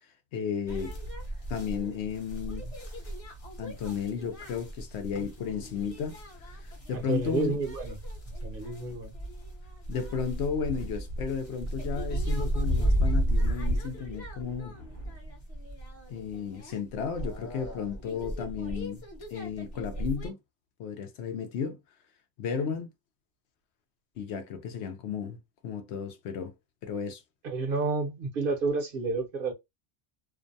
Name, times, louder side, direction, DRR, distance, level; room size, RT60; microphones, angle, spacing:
voice 1, 0.3-1.0 1.5-2.8 3.6-6.2 6.4-7.6 9.9-14.8 16.1-19.0 19.3-20.4 20.8-21.8 22.4-22.9 24.2-25.4 25.6-26.5 26.8-27.2, left 6 dB, 70° left, 0.8 m, -33 dB
sound 1, 0.7-20.3, right 1 dB, 35° left, 0.8 m, -34 dB
voice 2, 6.9-8.0 8.3-9.1 27.4-29.5, right 3 dB, 55° right, 0.8 m, -30 dB
2.5 x 2.1 x 2.6 m
omnidirectional pair, 1.2 m